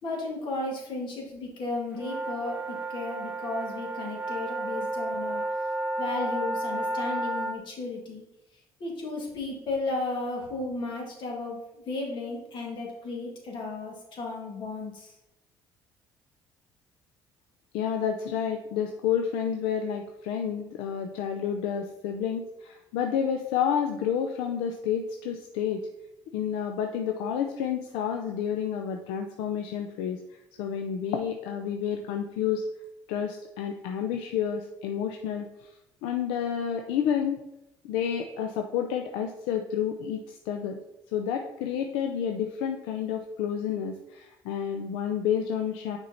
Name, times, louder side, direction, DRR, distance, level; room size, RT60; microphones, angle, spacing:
voice 1, 0.0-5.4 6.0-8.2 8.8-15.1, left 3 dB, 60° left, 0 dB, 2.0 m, -34 dB
sound 1, 1.9-7.6, right 1 dB, 20° right, 0.9 m, -32 dB
voice 2, 17.7-25.9 26.3-32.7 33.1-35.7 36.0-37.4 37.8-40.8 41.1-46.0, left 8 dB, 90° left, 5 dB, 0.5 m, -30 dB
6.4 x 4.5 x 4.1 m, 0.90 s
supercardioid pair, 80°, 9 cm